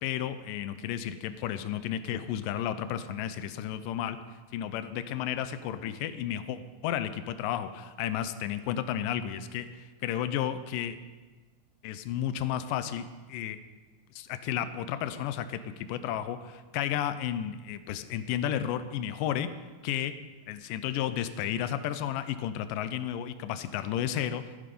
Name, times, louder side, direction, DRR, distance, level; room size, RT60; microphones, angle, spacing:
voice 1, 0.0-4.2 4.5-11.0 11.8-13.6 14.1-19.5 19.8-20.1 20.5-24.4, left 10 dB, 80° left, 11 dB, 2.2 m, -32 dB
13.5 x 11.0 x 5.4 m, 1.3 s
omnidirectional pair, 4.1 m